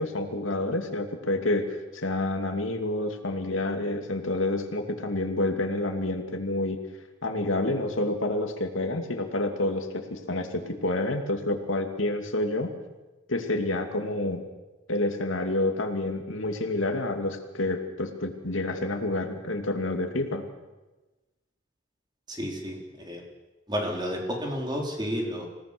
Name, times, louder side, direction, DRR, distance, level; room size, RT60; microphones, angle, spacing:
voice 1, 0.0-6.8 7.2-12.7 13.3-14.4 14.9-20.4, left 2 dB, 85° left, 5 dB, 2.6 m, -28 dB
voice 2, 22.3-23.2 23.7-25.6, equal, 20° right, 0 dB, 4.1 m, -31 dB
27.0 x 18.0 x 6.9 m, 1.1 s
head